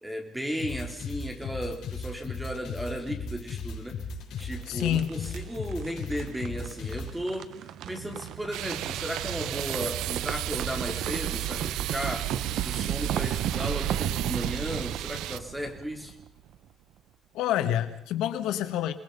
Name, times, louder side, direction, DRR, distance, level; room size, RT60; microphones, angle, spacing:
voice 1, 0.0-4.0 4.4-12.3 12.6-16.2, equal, 5° right, 3 dB, 3.6 m, -35 dB
sound 1, 0.6-7.1, left 4 dB, 60° left, 7.0 m, -36 dB
sound 2, 4.4-16.5, right 11 dB, 60° right, 1.1 m, -34 dB
voice 2, 4.7-5.4 17.3-18.9, left 11 dB, 90° left, 9 dB, 2.0 m, -28 dB
sound 3, 8.5-15.4, right 13 dB, 85° right, 0.8 m, -35 dB
28.5 x 21.0 x 5.6 m, 0.80 s
cardioid pair, 170°, 0 cm